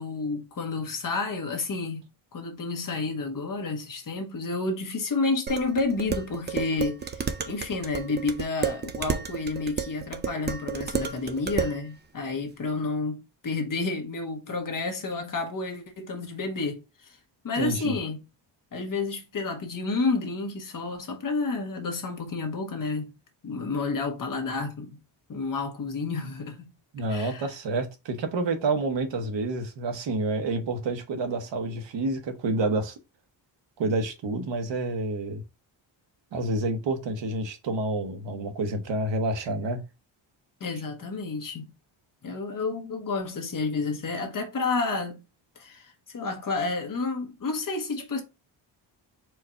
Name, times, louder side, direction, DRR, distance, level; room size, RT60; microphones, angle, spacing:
voice 1, 0.0-17.2 17.4-18.2 18.7-23.1 23.4-25.0 25.3-26.7 27.1-27.5 40.6-41.7 42.2-45.2 45.6-48.2, left 3 dB, 45° left, 1.2 m, -30 dB
Dishes pots and pans, 5.5-11.8, right 6 dB, 25° right, 0.4 m, -32 dB
voice 2, 17.6-17.9 26.9-32.9 33.8-35.4 36.3-39.8, right 2 dB, 70° right, 1.1 m, -28 dB
4.6 x 2.5 x 4.3 m
wide cardioid pair, 150°, 46 cm